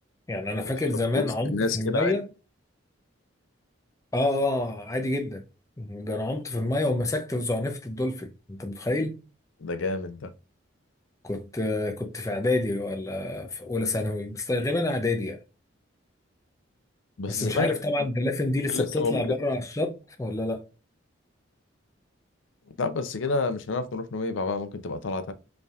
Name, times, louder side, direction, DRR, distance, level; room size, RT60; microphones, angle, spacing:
voice 1, 0.3-2.3 4.1-5.4 5.8-9.2 11.2-15.4 17.3-20.7, left 2 dB, 15° left, 0.5 m, -28 dB
voice 2, 1.1-2.2 9.6-10.3 17.2-17.7 18.7-19.4 22.8-25.3, left 3 dB, 75° left, 0.6 m, -29 dB
5.1 x 3.3 x 2.4 m
head